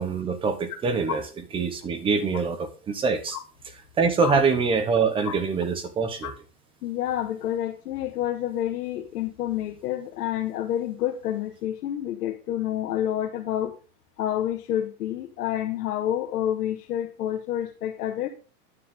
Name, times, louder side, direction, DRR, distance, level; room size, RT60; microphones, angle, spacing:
voice 1, 0.0-3.4 4.0-6.3, right 5 dB, 10° right, 9 dB, 0.8 m, -25 dB
voice 2, 6.8-13.8 14.2-18.3, left 11 dB, 75° left, 2 dB, 1.6 m, -28 dB
9.7 x 9.5 x 3.6 m, 0.32 s
supercardioid pair, 165°, 46 cm